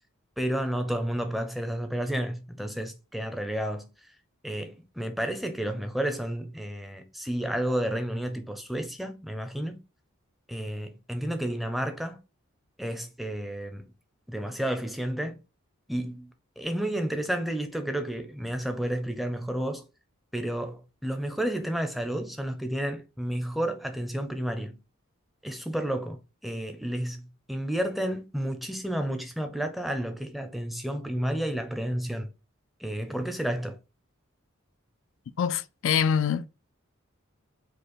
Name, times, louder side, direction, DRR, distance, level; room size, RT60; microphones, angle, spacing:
voice 1, 0.4-3.9 4.4-9.8 10.5-12.2 12.8-13.9 14.3-15.4 15.9-16.3 16.6-19.8 20.3-24.8 25.4-32.3 32.8-33.8, right 1 dB, ahead, 0.6 m, -31 dB
voice 2, 35.4-36.5, left 7 dB, 65° left, 0.3 m, -25 dB
5.1 x 2.1 x 4.3 m
head